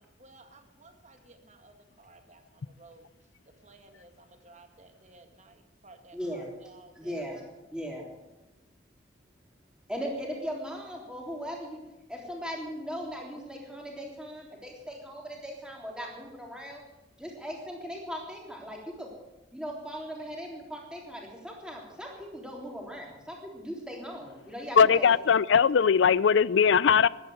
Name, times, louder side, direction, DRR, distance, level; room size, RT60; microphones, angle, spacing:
voice 1, 0.0-3.1 3.6-7.2, right 2 dB, 35° right, 1.7 m, -56 dB
voice 2, 6.1-6.5 7.0-7.4 7.7-8.0 9.9-11.8 12.1-16.8 17.2-19.1 19.5-25.1, equal, 5° right, 3.4 m, -38 dB
voice 3, 24.8-27.1, left 6 dB, 65° left, 0.4 m, -20 dB
14.5 x 11.5 x 7.9 m
head